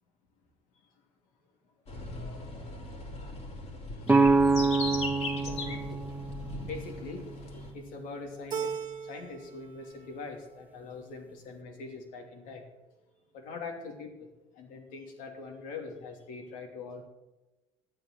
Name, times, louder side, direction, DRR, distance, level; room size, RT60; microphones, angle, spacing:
sound 1, 1.9-7.7, left 2 dB, 50° left, 3.5 m, -39 dB
sound 2, 4.1-7.9, right 3 dB, 10° right, 0.9 m, -26 dB
voice 1, 5.5-6.0 6.7-7.2 7.5-8.7 9.0-12.6 13.3-14.1 14.5-17.1, left 4 dB, 70° left, 3 dB, 3.0 m, -42 dB
Keyboard (musical), 8.5-9.6 9.9-10.7, right 7 dB, 35° right, 1.9 m, -37 dB
12.0 x 9.3 x 7.7 m, 1.1 s
hypercardioid pair, 70°, 14 cm